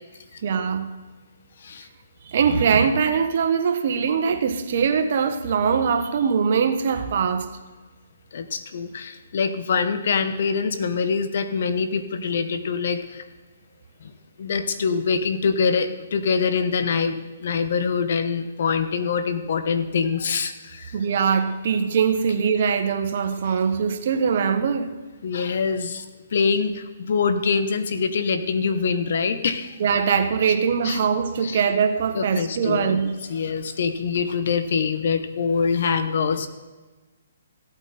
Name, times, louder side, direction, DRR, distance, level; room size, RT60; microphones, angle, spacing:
voice 1, 0.4-0.9 2.2-7.5 20.9-25.0 29.8-33.2, right 6 dB, 55° right, 1.3 m, -22 dB
voice 2, 8.3-13.2 14.4-20.9 23.5-23.6 25.2-26.0 26.3-29.8 30.8-31.0 31.4-31.6 32.1-33.0 33.3-36.5, left 5 dB, 60° left, 1.2 m, -24 dB
15.5 x 8.8 x 4.3 m
hypercardioid pair, 150°, 0 cm